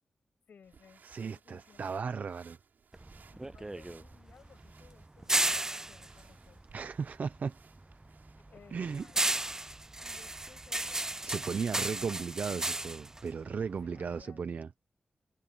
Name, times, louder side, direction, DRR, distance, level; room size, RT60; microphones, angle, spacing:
voice 1, 0.5-2.1 3.3-6.6 8.4-9.3 10.0-12.3 13.8-14.6, left 6 dB, 90° left, 6.9 m, -59 dB
sound 1, 0.6-10.5, right 6 dB, 85° right, 7.5 m, -62 dB
voice 2, 1.0-2.6 6.7-7.6 8.7-9.1 11.2-14.7, right 5 dB, 70° right, 0.7 m, -36 dB
sound 2, 2.9-7.4 7.8-14.2, right 2 dB, 20° right, 0.3 m, -34 dB
cardioid pair, 75°, 3 cm